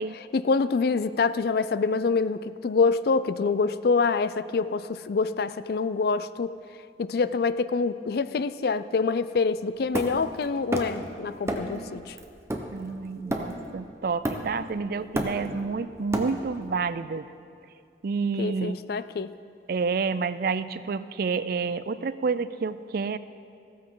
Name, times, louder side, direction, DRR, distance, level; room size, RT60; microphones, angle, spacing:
voice 1, 0.3-6.6 7.0-12.2 18.4-19.3, left 4 dB, 60° left, 14 dB, 0.4 m, -26 dB
Hammer, 9.9-11.1 11.5-11.8 12.2-13.8 14.2-14.7 15.0-16.7, right 1 dB, 15° right, 0.9 m, -31 dB
voice 2, 12.7-17.3 18.0-18.8 19.7-23.2, right 4 dB, 55° right, 14 dB, 0.4 m, -29 dB
15.5 x 13.5 x 3.9 m, 2.4 s
head